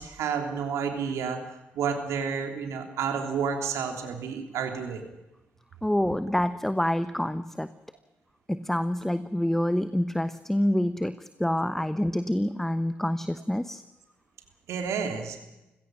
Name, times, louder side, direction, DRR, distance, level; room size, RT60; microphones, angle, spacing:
voice 1, 0.0-1.4 1.7-5.0 14.7-15.4, right 6 dB, 70° right, 4 dB, 3.2 m, -30 dB
voice 2, 5.8-7.7 8.5-13.8, left 1 dB, 5° left, 13 dB, 1.0 m, -27 dB
29.0 x 16.5 x 6.3 m, 0.98 s
hypercardioid pair, 40°, 5 cm